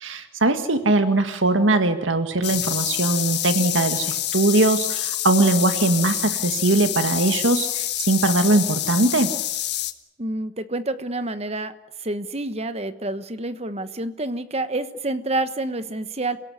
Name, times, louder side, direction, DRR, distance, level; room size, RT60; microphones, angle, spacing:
voice 1, 0.0-9.3, right 2 dB, 85° right, 8 dB, 1.8 m, -21 dB
sound 1, 2.4-9.9, left 13 dB, 60° left, 1.5 m, -27 dB
voice 2, 10.2-11.7 12.0-16.4, right 2 dB, 35° right, 11 dB, 1.2 m, -28 dB
28.0 x 17.5 x 9.9 m, 0.92 s
head